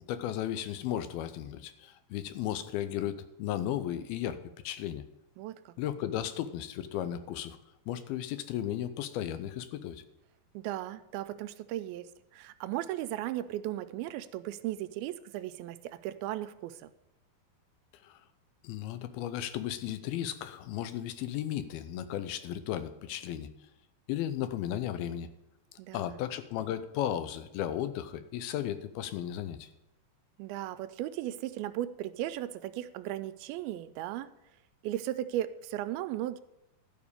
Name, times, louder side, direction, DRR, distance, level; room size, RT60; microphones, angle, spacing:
voice 1, 0.1-5.0 5.8-7.6 7.9-10.0 18.0-18.2 18.6-23.5 24.1-25.3 25.9-29.7, left 11 dB, 85° left, 12 dB, 2.6 m, -35 dB
voice 2, 5.4-5.7 10.5-16.9 25.8-26.2 30.4-34.3 34.8-36.4, right 13 dB, 90° right, 12 dB, 2.5 m, -36 dB
12.0 x 5.1 x 8.2 m, 0.87 s
omnidirectional pair, 4.3 m